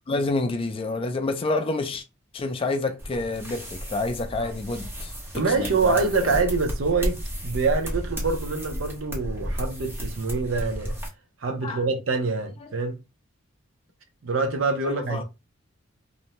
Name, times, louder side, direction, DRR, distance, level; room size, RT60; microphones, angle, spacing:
voice 1, 0.1-2.0 2.3-6.4 11.6-11.8 14.8-15.2, left 3 dB, 25° left, 0.3 m, -28 dB
sound 1, 3.0-11.1, equal, 10° right, 0.7 m, -33 dB
voice 2, 5.4-7.2 7.4-11.0 11.4-13.0 14.2-15.2, right 4 dB, 70° right, 0.6 m, -25 dB
2.5 x 2.0 x 2.9 m
head